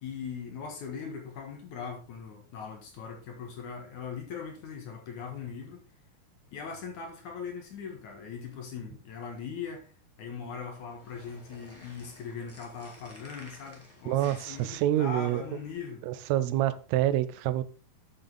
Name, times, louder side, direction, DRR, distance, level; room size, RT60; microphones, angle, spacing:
voice 1, 0.0-5.8 6.5-9.9 10.2-16.0, left 6 dB, 60° left, 2.4 m, -40 dB
sound 1, 10.8-15.8, left 1 dB, 5° left, 1.3 m, -53 dB
voice 2, 14.1-15.4 16.0-17.6, right 13 dB, 85° right, 2.6 m, -27 dB
8.7 x 7.4 x 3.5 m
omnidirectional pair, 4.6 m